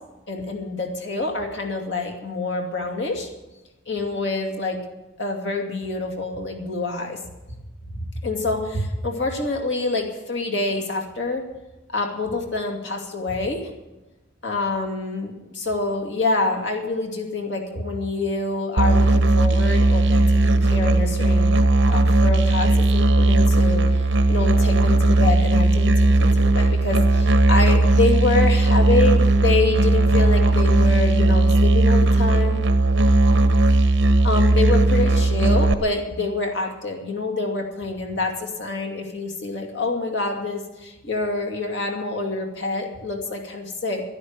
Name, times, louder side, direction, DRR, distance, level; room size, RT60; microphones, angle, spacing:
voice 1, 0.3-3.3 3.9-4.8 5.2-7.2 7.9-11.4 11.9-13.7 14.4-21.5 21.9-32.6 34.2-44.0, left 3 dB, 65° left, 2 dB, 2.5 m, -26 dB
Musical instrument, 18.8-35.7, right 2 dB, 65° right, 1.0 m, -17 dB
11.5 x 11.0 x 8.0 m, 1.1 s
head